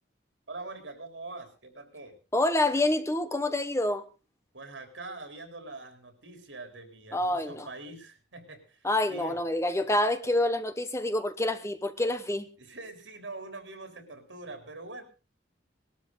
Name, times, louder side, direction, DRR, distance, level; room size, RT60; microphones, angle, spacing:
voice 1, 0.5-2.2 4.5-9.4 12.6-15.0, right 2 dB, 85° right, 3.6 m, -43 dB
voice 2, 2.3-4.0 7.1-7.7 8.8-12.5, left 1 dB, 15° left, 1.0 m, -27 dB
19.5 x 13.0 x 3.9 m
head